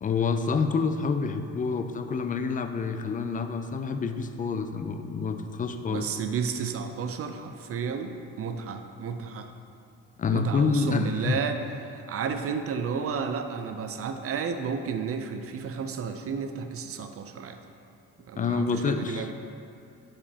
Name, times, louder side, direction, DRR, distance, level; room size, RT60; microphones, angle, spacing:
voice 1, 0.0-6.1 10.2-11.4 18.4-19.3, left 5 dB, 30° left, 8 dB, 0.4 m, -27 dB
voice 2, 5.9-9.5 10.3-17.6 18.3-19.3, right 6 dB, 50° right, 7 dB, 0.5 m, -32 dB
7.2 x 4.9 x 2.8 m, 2.5 s
cardioid pair, 90°, 30 cm